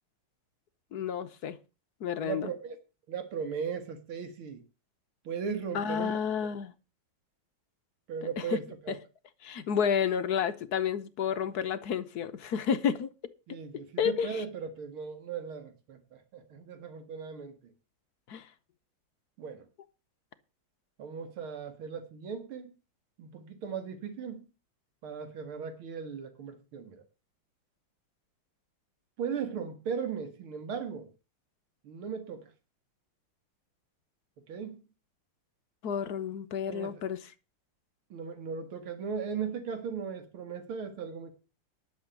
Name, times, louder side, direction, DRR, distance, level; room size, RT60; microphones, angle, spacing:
voice 1, 0.9-1.6 2.0-2.5 5.7-6.7 8.4-8.6 8.9-9.0 9.4-13.1 14.0-14.4 18.3-18.5 35.8-37.2, left 7 dB, 60° left, 1.2 m, -30 dB
voice 2, 2.2-2.8 3.1-4.6 5.2-6.2 8.1-9.0 13.5-16.0 16.3-17.7 19.4-19.7 21.0-22.7 23.2-24.5 25.0-27.0 29.2-31.1 31.8-32.5 34.5-34.8 36.6-37.0 38.1-41.3, right 6 dB, 80° right, 2.7 m, -37 dB
11.5 x 6.9 x 7.0 m
omnidirectional pair, 2.3 m